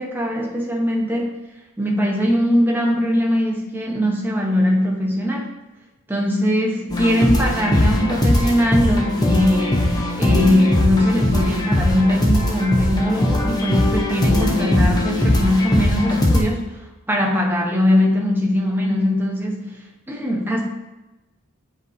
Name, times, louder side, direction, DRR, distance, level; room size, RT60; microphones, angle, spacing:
voice 1, 0.0-1.3 1.8-5.5 6.1-9.9 10.1-16.8 17.1-19.7 20.1-20.6, left 1 dB, 10° right, -2 dB, 0.9 m, -20 dB
sound 1, 6.9-16.4, left 1 dB, 15° left, 0.8 m, -19 dB
8.0 x 4.8 x 2.7 m, 1.0 s
head